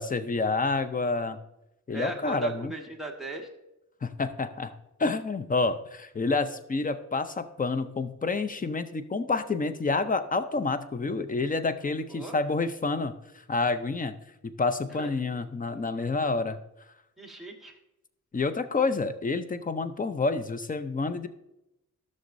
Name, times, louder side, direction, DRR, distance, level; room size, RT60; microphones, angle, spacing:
voice 1, 0.0-1.4 1.9-2.7 4.0-4.7 5.0-13.1 13.5-14.2 14.4-16.6 18.3-21.3, left 3 dB, 25° left, 10 dB, 0.5 m, -28 dB
voice 2, 1.9-3.5 12.1-12.4 14.9-15.1 16.0-16.1 17.2-17.8, right 2 dB, ahead, -1 dB, 1.3 m, -38 dB
14.5 x 6.4 x 2.6 m, 0.88 s
wide cardioid pair, 150°, 32 cm